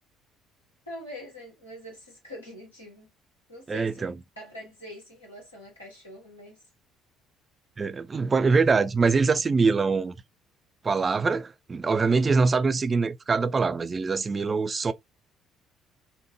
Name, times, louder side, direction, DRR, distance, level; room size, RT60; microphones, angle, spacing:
voice 1, 0.9-3.1 3.5-6.6, left 1 dB, 85° left, 1.3 m, -44 dB
voice 2, 3.7-4.1 7.8-10.1 10.8-14.9, right 4 dB, 30° right, 0.4 m, -24 dB
3.4 x 2.1 x 3.1 m
figure-of-eight pair, 50°, 0 cm